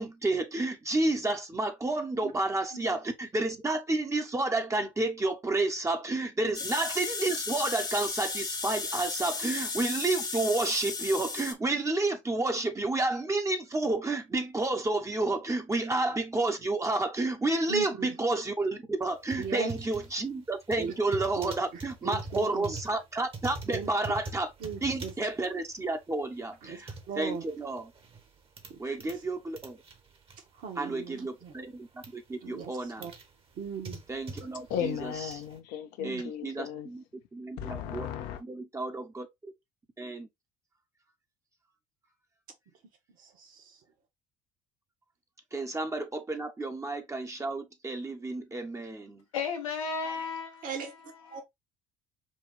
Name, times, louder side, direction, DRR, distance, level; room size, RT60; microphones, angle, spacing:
voice 1, 0.0-24.5 24.8-27.9 28.8-29.8 30.8-33.1 34.1-35.1 36.0-37.0 37.3-38.1 38.4-39.3 40.0-40.3 45.5-49.2, right 2 dB, 15° right, 0.9 m, -30 dB
sound 1, 6.5-11.5, left 4 dB, 25° left, 0.9 m, -34 dB
voice 2, 17.7-18.1 19.4-19.7 20.8-20.9 21.4-22.8 23.7-23.9 24.6-25.1 26.6-26.8 27.1-27.4 28.7-28.8 30.6-31.5 32.4-32.7 33.0-33.1 33.6-34.0 36.0-36.2 43.2-43.5 50.6-51.4, right 6 dB, 55° right, 1.4 m, -38 dB
sound 2, 19.1-29.2 29.5-31.2 31.5-32.1 32.6-35.6, right 3 dB, 30° right, 1.2 m, -44 dB
voice 3, 34.7-36.9 37.6-38.4, left 9 dB, 60° left, 0.7 m, -35 dB
voice 4, 49.3-50.7 51.3-51.4, left 5 dB, 80° left, 1.1 m, -34 dB
5.3 x 2.3 x 3.2 m
hypercardioid pair, 65°, 17 cm